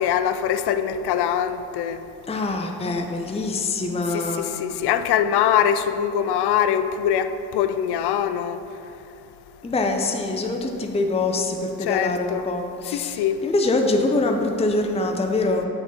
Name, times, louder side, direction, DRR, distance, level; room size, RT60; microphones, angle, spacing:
voice 1, 0.0-2.0 4.1-8.6 11.9-12.5 12.9-13.4, left 9 dB, 70° left, 0.5 m, -23 dB
voice 2, 2.3-4.5 9.6-15.7, left 2 dB, 15° left, 0.6 m, -24 dB
6.0 x 3.8 x 5.7 m
supercardioid pair, 45°, 41 cm